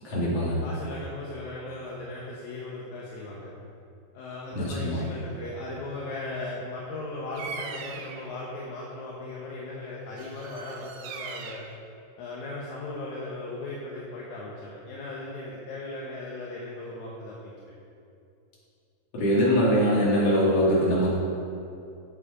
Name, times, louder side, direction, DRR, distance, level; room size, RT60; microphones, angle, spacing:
voice 1, 0.0-0.6 4.5-5.0 19.1-21.2, equal, 50° left, -7 dB, 3.3 m, -23 dB
voice 2, 0.6-3.5 4.1-11.6 12.2-17.8, left 2 dB, 75° left, -4 dB, 2.4 m, -37 dB
Bird vocalization bird call bird song, 7.3-8.3 10.2-11.8, right 5 dB, 80° right, 1.3 m, -40 dB
9.7 x 7.7 x 4.9 m, 2.6 s
omnidirectional pair, 3.6 m